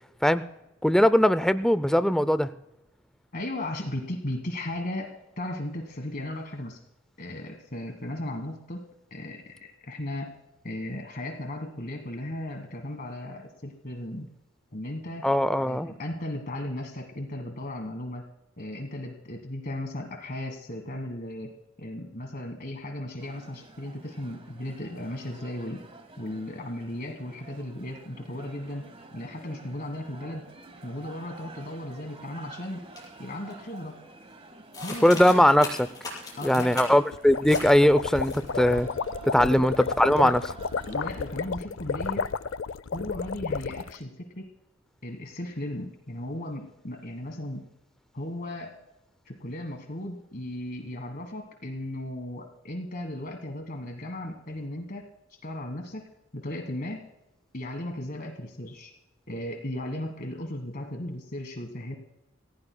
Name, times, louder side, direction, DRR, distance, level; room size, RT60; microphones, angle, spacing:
voice 1, 0.8-2.5 15.2-15.9 35.0-35.7 36.4-38.9 39.3-40.4, equal, 5° left, 13 dB, 0.4 m, -20 dB
voice 2, 3.3-6.8 7.2-8.8 9.1-10.3 10.6-14.3 14.7-15.3 15.6-18.3 18.6-25.9 26.2-30.4 30.8-32.9 33.2-34.0 34.8-35.2 36.4-36.9 39.4-39.6 40.0-40.3 40.9-42.3 42.9-44.5 45.0-47.7 48.1-48.8 49.2-55.1 55.4-57.1 57.5-58.9 59.3-62.0, left 1 dB, 45° left, 4 dB, 1.4 m, -36 dB
sound 1, 23.2-41.5, right 2 dB, 30° right, 1.6 m, -49 dB
sound 2, 33.0-33.1 33.5-33.9 34.7-37.1 37.5-37.7 38.0-38.7, left 3 dB, 20° left, 5.7 m, -39 dB
sound 3, 37.1-44.0, left 5 dB, 70° left, 0.5 m, -32 dB
27.5 x 16.0 x 2.2 m, 0.90 s
head